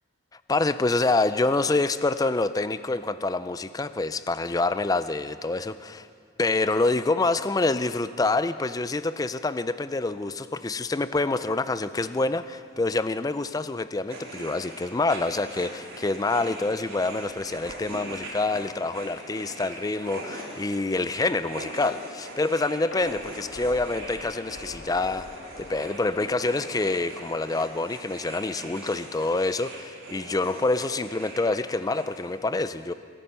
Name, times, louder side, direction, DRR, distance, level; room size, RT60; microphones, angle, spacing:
voice 1, 0.5-6.1 6.4-25.3 25.6-32.9, left 3 dB, 20° left, 13 dB, 0.4 m, -26 dB
sound 1, 14.1-32.3, right 1 dB, 85° right, 3.7 m, -42 dB
sound 2, 17.1-20.1 20.4-20.6 21.0-21.1 22.9-27.8 28.1-28.3 28.8-28.9, left 2 dB, 70° left, 2.0 m, -45 dB
22.0 x 10.0 x 5.5 m, 2.2 s
head